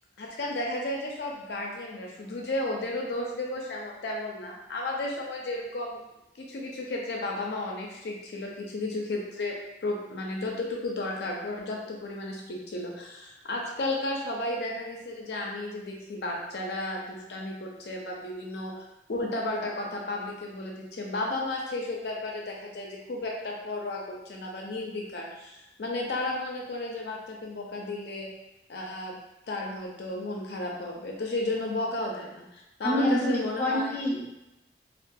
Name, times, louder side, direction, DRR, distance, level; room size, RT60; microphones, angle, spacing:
voice 1, 0.2-6.0 6.4-9.5 9.8-18.8 19.1-28.3 28.7-29.2 29.5-33.9, left 2 dB, 65° left, -1 dB, 0.4 m, -33 dB
voice 2, 32.8-34.2, equal, 15° left, -7 dB, 0.5 m, -26 dB
2.4 x 2.2 x 2.6 m, 0.91 s
head